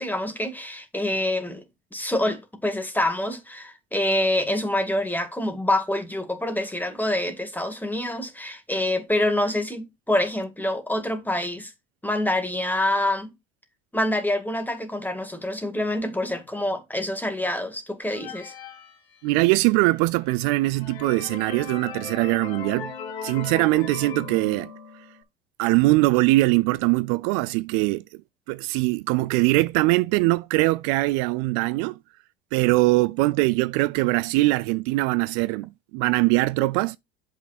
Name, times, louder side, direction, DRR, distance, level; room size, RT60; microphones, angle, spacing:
voice 1, 0.0-1.6 1.9-11.7 12.0-13.3 13.9-18.5, left 1 dB, 5° left, 2.1 m, -26 dB
sound 1, 18.0-19.7 20.2-20.3 20.7-25.2, left 7 dB, 75° left, 2.0 m, -38 dB
voice 2, 19.2-22.9 23.2-24.7 25.6-28.0 28.5-32.0 32.5-37.0, right 21 dB, 65° right, 0.5 m, -22 dB
7.3 x 5.8 x 4.2 m
hypercardioid pair, 85°, 30 cm